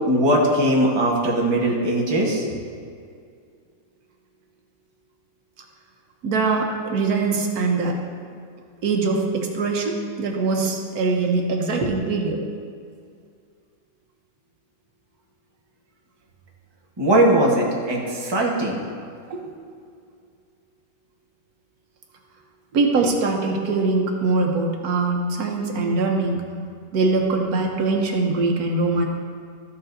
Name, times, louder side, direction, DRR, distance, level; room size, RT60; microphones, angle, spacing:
voice 1, 0.0-2.5 17.0-18.8, right 1 dB, 20° right, -2 dB, 1.1 m, -20 dB
voice 2, 6.2-8.0 8.8-12.4 19.3-19.4 22.7-26.4 26.9-29.1, right 3 dB, 80° right, 2 dB, 1.4 m, -22 dB
13.0 x 7.0 x 2.6 m, 2.3 s
omnidirectional pair, 1.6 m